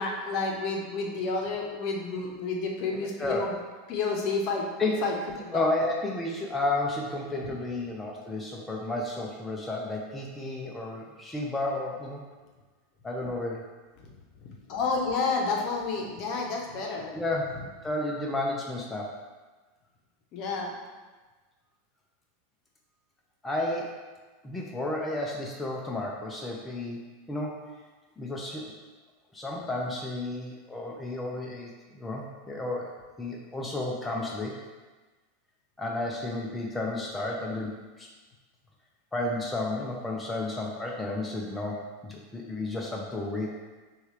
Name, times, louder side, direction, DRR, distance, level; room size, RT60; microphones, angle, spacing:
voice 1, 0.0-3.5 3.9-4.7 5.0-5.6 14.7-17.2 20.3-20.7, left 4 dB, 50° left, 0 dB, 0.9 m, -30 dB
voice 2, 2.9-3.4 4.8-5.1 5.5-12.2 13.0-13.6 17.1-17.5 17.8-19.2 23.4-24.0 24.4-27.0 27.3-27.6 28.2-28.7 29.3-32.9 33.2-34.6 35.8-38.1 39.1-43.6, left 2 dB, 10° left, -2 dB, 0.6 m, -32 dB
6.1 x 2.4 x 3.3 m, 1.3 s
hypercardioid pair, 105°, 0 cm